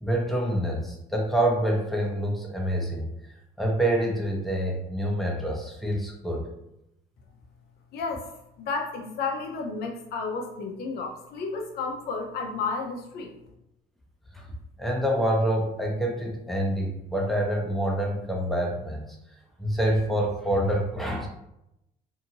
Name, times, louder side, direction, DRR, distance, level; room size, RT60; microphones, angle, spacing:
voice 1, 0.0-3.1 3.6-6.5 14.3-14.5 14.8-19.2 19.6-21.3, right 1 dB, ahead, -1 dB, 0.7 m, -26 dB
voice 2, 7.9-8.2 8.6-13.3, left 4 dB, 70° left, 3 dB, 0.6 m, -32 dB
2.8 x 2.5 x 2.7 m, 0.83 s
cardioid pair, 110°, 17 cm